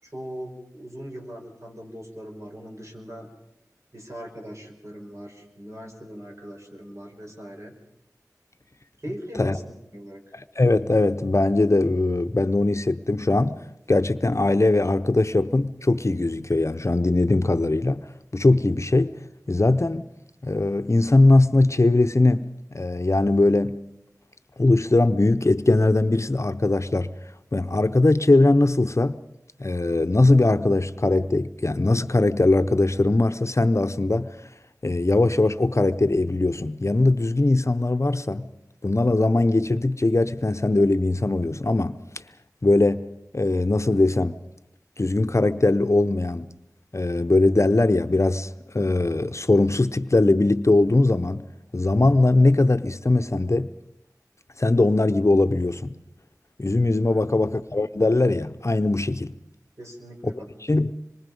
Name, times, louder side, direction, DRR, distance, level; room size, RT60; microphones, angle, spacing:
voice 1, 0.0-3.3 3.9-7.7 9.0-9.6 9.9-10.3 57.1-57.3 59.8-60.5, equal, 50° right, 5.6 m, -40 dB
voice 2, 10.6-13.6 13.9-18.0 18.3-19.1 19.5-20.0 20.4-23.8 24.6-27.1 27.5-29.2 29.6-34.3 34.8-38.5 38.8-42.0 42.6-43.0 43.3-44.4 45.0-46.5 46.9-53.7 54.6-55.9 56.6-59.3 60.7-60.9, left 2 dB, 50° left, 0.7 m, -20 dB
26.0 x 23.5 x 5.4 m
wide cardioid pair, 40°, 6 cm